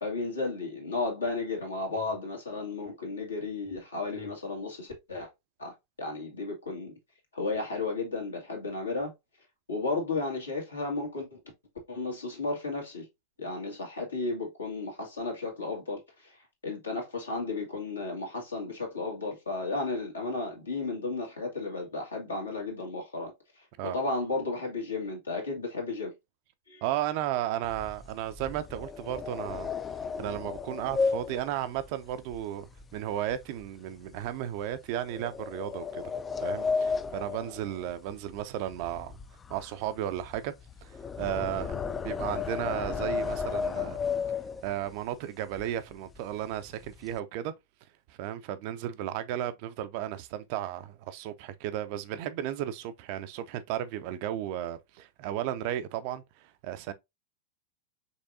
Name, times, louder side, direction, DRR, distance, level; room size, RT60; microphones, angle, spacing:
voice 1, 0.0-5.3 5.6-6.9 7.3-9.1 9.7-11.4 11.9-13.1 13.4-16.4 16.6-23.3 23.6-23.7 23.9-26.1 26.7-26.8, left 3 dB, 75° left, 1.8 m, -33 dB
voice 2, 26.8-29.7 30.2-36.0 36.4-39.2 39.5-40.5 40.8-40.9 41.2-41.8 42.0-44.0 44.6-47.5 48.2-56.2 56.6-56.9, right 12 dB, 45° right, 0.4 m, -34 dB
sound 1, 27.6-33.0 33.3-33.6 34.1-34.3 35.1-38.4 38.7-44.9 45.5-45.6 45.9-46.2 46.5-47.2, left 5 dB, 20° left, 0.3 m, -33 dB
5.4 x 3.3 x 2.6 m
figure-of-eight pair, 90°, 0 cm